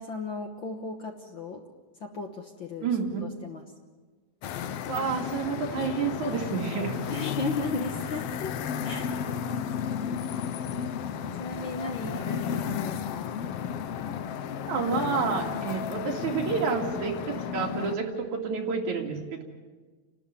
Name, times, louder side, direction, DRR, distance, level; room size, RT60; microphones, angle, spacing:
voice 1, 0.0-1.6 2.0-2.9 3.2-3.6 7.1-8.5 8.8-9.1 11.4-13.4, left 3 dB, 50° left, 4 dB, 1.6 m, -35 dB
voice 2, 2.8-3.2 4.9-7.0 14.7-19.4, right 5 dB, 70° right, 1 dB, 3.8 m, -29 dB
sound 1, 4.4-18.0, left 8 dB, 70° left, 1.5 m, -33 dB
30.0 x 12.5 x 9.7 m, 1.4 s
omnidirectional pair, 3.5 m